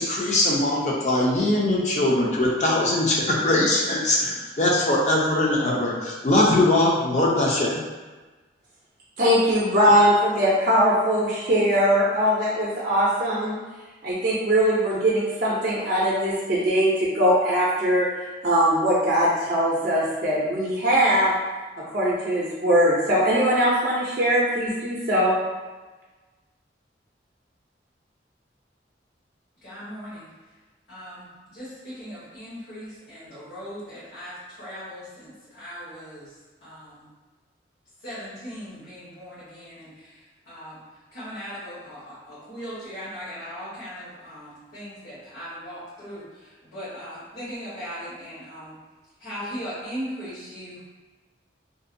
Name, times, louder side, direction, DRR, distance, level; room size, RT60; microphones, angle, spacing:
voice 1, 0.0-7.8, left 1 dB, 40° left, -3 dB, 0.5 m, -21 dB
voice 2, 9.2-13.5 14.0-18.1 18.4-21.3 21.9-25.3, equal, 50° right, -7 dB, 0.4 m, -21 dB
voice 3, 29.6-30.3 30.9-36.4 36.6-37.1 38.0-40.8 41.1-48.8 49.2-50.8, equal, 70° left, -13 dB, 1.1 m, -38 dB
2.6 x 2.2 x 2.5 m, 1.3 s
head